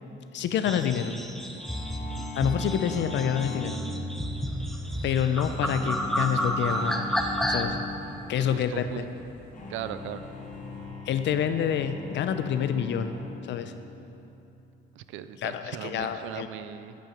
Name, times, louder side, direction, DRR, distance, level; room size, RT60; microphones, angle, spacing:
voice 1, 0.3-1.1 2.4-3.8 5.0-7.0 7.5-7.8 8.3-9.0 11.1-13.1 13.5-13.7 15.4-16.5, left 8 dB, 65° left, 10 dB, 0.5 m, -27 dB
sound 1, 0.7-7.7, equal, ahead, 0.6 m, -31 dB
sound 2, 1.6-16.0, left 4 dB, 40° left, 1.1 m, -41 dB
sound 3, 2.7-10.8, equal, 60° right, 1.3 m, -43 dB
voice 2, 7.9-9.1 9.7-10.2 14.9-17.0, right 11 dB, 90° right, 12 dB, 0.4 m, -39 dB
8.9 x 5.5 x 5.2 m, 2.8 s
cardioid pair, 100°, 20 cm